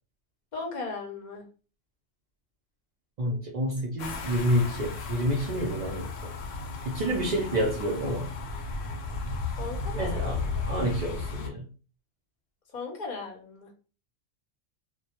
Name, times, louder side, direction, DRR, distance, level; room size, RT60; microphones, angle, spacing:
voice 1, 0.5-1.4 7.0-7.6 9.6-10.6 12.7-13.7, left 3 dB, 50° left, 2 dB, 0.6 m, -38 dB
voice 2, 3.2-6.3 6.8-8.3 9.9-10.4 10.7-11.6, equal, 70° right, -2 dB, 0.4 m, -28 dB
sound 1, 4.0-11.5, left 3 dB, 90° left, 1.0 m, -34 dB
2.1 x 2.1 x 2.8 m, 0.36 s
omnidirectional pair, 1.3 m